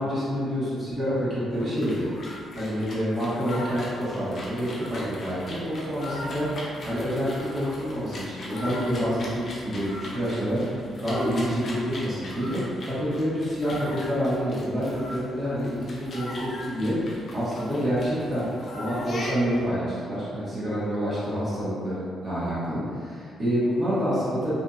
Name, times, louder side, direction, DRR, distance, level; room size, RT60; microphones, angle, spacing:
voice 1, 0.0-2.1 2.5-10.7 11.0-12.6 12.9-18.5 18.7-24.5, equal, 35° right, -10 dB, 1.2 m, -27 dB
sound 1, 1.5-19.7, left 1 dB, 45° left, 0.6 m, -39 dB
2.6 x 2.5 x 2.4 m, 2.2 s
cardioid pair, 90°, 0 cm